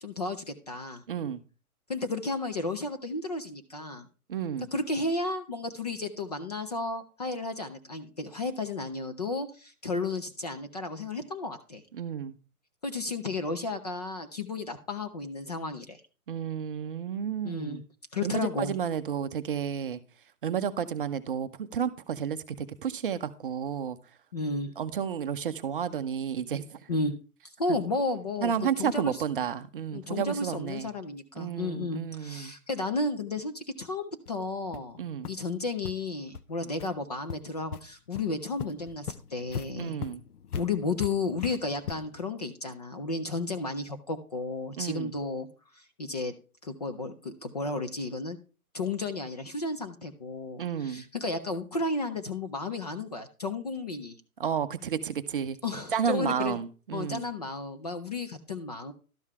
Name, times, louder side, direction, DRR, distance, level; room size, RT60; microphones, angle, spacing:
voice 1, 0.0-1.0 1.9-4.1 4.7-11.8 12.8-16.0 17.4-17.8 18.1-18.7 24.3-24.7 26.9-27.1 27.6-29.2 29.9-40.0 40.6-45.5 45.8-46.3 46.6-48.4 48.7-54.2 55.6-56.6 56.9-58.9, left 3 dB, 30° left, 0.5 m, -33 dB
voice 2, 1.1-1.4 4.3-4.7 11.9-12.3 16.3-17.8 18.2-20.0 20.4-24.0 24.8-26.8 28.4-30.9 31.4-32.5 35.0-35.3 39.8-40.2 44.8-45.1 50.6-51.0 54.4-55.6 55.9-57.2, right 8 dB, 35° right, 0.6 m, -31 dB
sound 1, 34.3-34.4 34.7-34.9 35.2-35.3 35.8-35.9 36.3-36.4 36.8-36.9 37.3-37.8 38.2-38.3 38.6-42.2, left 7 dB, 80° left, 0.8 m, -39 dB
12.0 x 5.5 x 4.7 m
hypercardioid pair, 150°, 45 cm